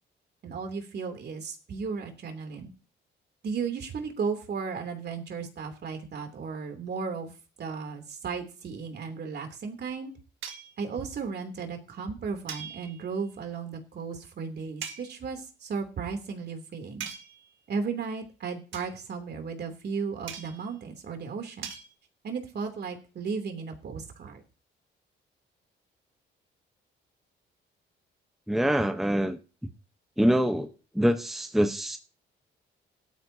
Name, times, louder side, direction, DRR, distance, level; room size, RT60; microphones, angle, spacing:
voice 1, 0.4-2.7 3.4-7.3 7.6-10.1 10.8-17.1 17.7-21.7 22.2-24.4, right 5 dB, 55° right, 5 dB, 3.1 m, -35 dB
sound 1, 10.4-10.8 12.5-13.2 14.8-15.1 17.0-17.5 18.7-19.0 20.3-20.7 21.6-21.9, right 7 dB, 75° right, 1.8 m, -40 dB
voice 2, 28.5-29.4 30.2-30.7 30.9-32.0, equal, ahead, 6 dB, 1.0 m, -24 dB
17.5 x 12.5 x 2.8 m, 0.35 s
cardioid pair, 90°, 20 cm